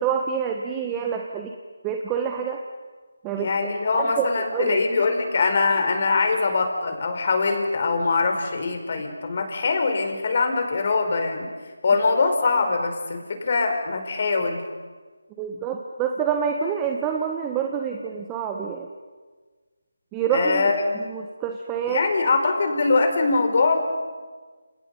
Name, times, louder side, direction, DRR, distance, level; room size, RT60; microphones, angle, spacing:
voice 1, 0.0-1.5 1.8-2.6 3.2-4.8 15.4-18.9 20.1-22.0, right 7 dB, 15° right, 3 dB, 1.4 m, -27 dB
voice 2, 3.4-11.5 11.8-14.6 20.3-21.0 21.9-23.8, left 4 dB, 45° left, 5 dB, 4.8 m, -22 dB
30.0 x 29.0 x 5.5 m, 1.4 s
figure-of-eight pair, 160°, 0 cm